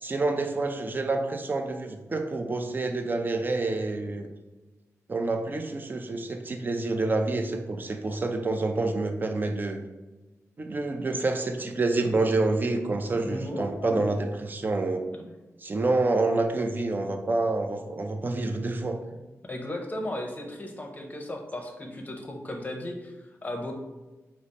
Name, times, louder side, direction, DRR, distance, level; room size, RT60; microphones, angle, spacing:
voice 1, 0.0-4.3 5.1-9.8 10.6-15.0 15.6-19.0, right 2 dB, 35° right, 5 dB, 0.5 m, -28 dB
voice 2, 12.9-14.0 15.1-15.3 19.5-23.7, left 1 dB, 30° left, 2 dB, 0.7 m, -36 dB
4.9 x 2.0 x 4.1 m, 1.1 s
wide cardioid pair, 85°, 6 cm